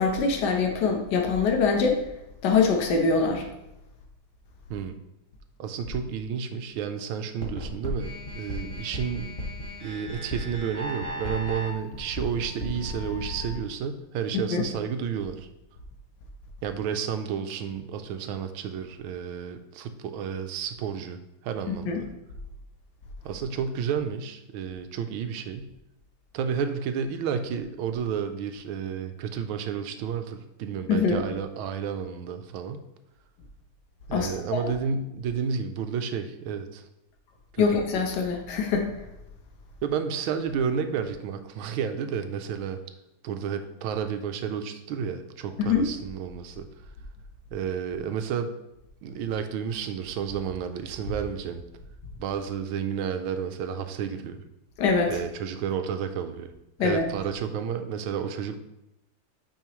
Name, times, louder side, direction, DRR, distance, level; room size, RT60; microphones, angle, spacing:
voice 1, 0.0-2.0 2.4-3.5 14.3-14.6 21.7-22.0 30.9-31.2 34.1-34.6 37.6-38.9 45.6-45.8 54.8-55.2 56.8-57.1, left 5 dB, 60° left, 2 dB, 1.5 m, -24 dB
voice 2, 5.6-9.3 9.8-15.5 16.6-22.0 23.2-25.7 26.3-32.8 34.1-36.8 37.5-37.7 39.8-42.8 43.2-46.7 47.5-48.5 49.0-51.6 52.2-54.4 55.1-56.5 56.8-58.6, right 7 dB, 80° right, 8 dB, 1.4 m, -31 dB
sound 1, 7.4-13.6, equal, 15° left, 1.2 m, -35 dB
9.2 x 5.0 x 3.1 m, 0.88 s
omnidirectional pair, 2.3 m